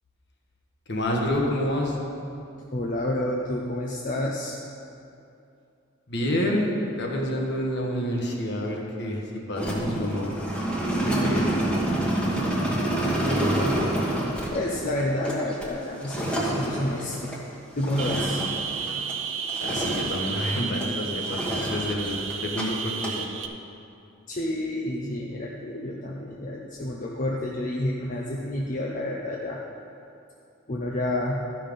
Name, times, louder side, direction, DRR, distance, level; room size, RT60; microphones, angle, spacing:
voice 1, 0.9-2.0 6.1-10.3 11.1-11.5 19.6-21.4 21.7-23.2, left 1 dB, 60° left, -1 dB, 1.4 m, -28 dB
voice 2, 2.7-4.6 13.6-13.9 14.5-17.3 17.8-18.4 24.3-29.6 30.7-31.4, left 1 dB, 40° left, -2 dB, 0.7 m, -29 dB
sound 1, 9.5-19.2 19.5-20.9 21.2-22.6 22.9-23.2, right 1 dB, 5° left, 1.3 m, -28 dB
sound 2, 18.0-23.5, right 6 dB, 80° right, 0.6 m, -32 dB
13.0 x 5.7 x 5.3 m, 2.6 s
head